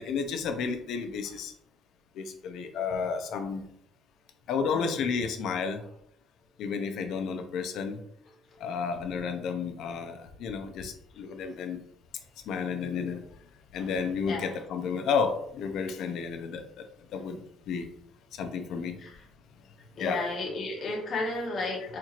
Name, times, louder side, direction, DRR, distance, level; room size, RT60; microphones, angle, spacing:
voice 1, 0.0-1.5 2.1-3.7 4.5-5.8 6.6-8.0 8.6-11.8 12.5-13.2 13.7-16.9 17.1-17.4 17.7-17.9 18.3-19.0 20.0-20.3, left 5 dB, 60° left, 7 dB, 0.5 m, -32 dB
voice 2, 11.1-11.6 13.7-14.5 19.0-19.2 20.0-22.0, left 2 dB, 35° left, -1 dB, 0.9 m, -34 dB
4.3 x 2.9 x 2.4 m, 0.71 s
cardioid pair, 160°, 0 cm